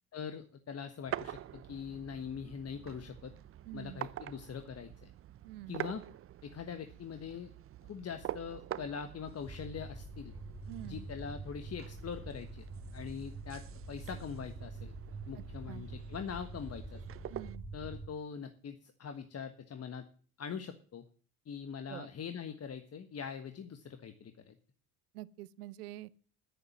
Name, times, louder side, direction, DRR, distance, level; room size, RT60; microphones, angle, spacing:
voice 1, 0.1-3.3 3.7-5.1 5.7-6.0 6.4-7.5 7.9-10.3 10.8-12.6 12.9-14.9 15.3-17.0 17.7-20.0 20.4-21.0 21.5-24.5, left 7 dB, 35° left, 1.5 m, -43 dB
sound 1, 1.1-17.6, right 12 dB, 30° right, 0.6 m, -46 dB
voice 2, 3.7-4.0 5.4-5.8 10.7-11.1 15.3-15.9 17.3-17.6 21.9-22.1 25.1-26.1, right 15 dB, 85° right, 0.8 m, -46 dB
sound 2, 9.4-18.1, right 2 dB, 5° right, 2.1 m, -46 dB
10.5 x 9.6 x 7.3 m
hypercardioid pair, 80°, 44 cm